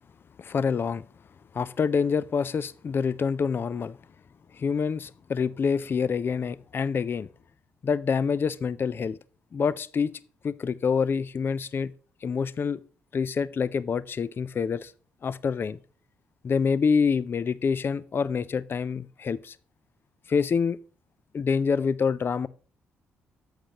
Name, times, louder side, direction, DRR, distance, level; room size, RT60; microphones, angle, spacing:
voice 1, 0.4-1.0 1.5-4.0 4.5-7.3 7.8-9.2 9.5-10.1 10.4-11.9 12.2-12.8 13.1-14.9 15.2-15.8 16.4-19.6 20.3-20.8 21.3-22.5, left 6 dB, 40° left, 0.4 m, -26 dB
11.5 x 7.5 x 2.9 m
hypercardioid pair, 50°, 5 cm